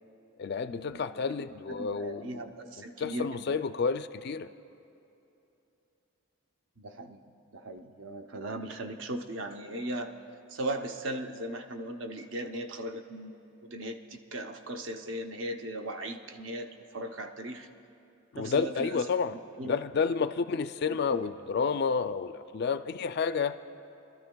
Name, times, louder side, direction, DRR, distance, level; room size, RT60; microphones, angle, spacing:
voice 1, 0.4-2.5 2.8-4.5 18.3-19.4 19.6-23.6, left 5 dB, 50° left, 11 dB, 0.3 m, -30 dB
voice 2, 1.9-3.5 6.8-7.2 7.5-10.1 10.5-17.7 18.4-19.0 19.6-19.8 21.1-21.3, right 1 dB, 65° right, 5 dB, 0.7 m, -38 dB
26.0 x 13.0 x 2.3 m, 2.9 s
head